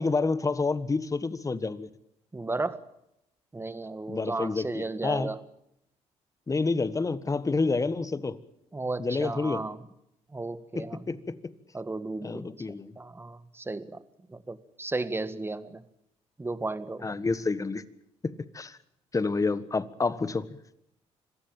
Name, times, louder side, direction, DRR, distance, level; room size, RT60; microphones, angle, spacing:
voice 1, 0.0-1.9 4.1-5.3 6.5-8.4 9.0-9.6 10.7-11.5 12.2-12.9 17.0-17.8 18.2-18.8 19.1-20.5, left 3 dB, 25° left, 14 dB, 1.5 m, -29 dB
voice 2, 2.3-2.8 3.5-5.4 8.7-9.8 10.3-11.2 11.7-12.5 13.0-14.0 14.3-15.8 16.4-17.1, right 3 dB, 20° right, 13 dB, 1.7 m, -34 dB
26.0 x 15.5 x 8.9 m, 0.80 s
supercardioid pair, 75°, 12 cm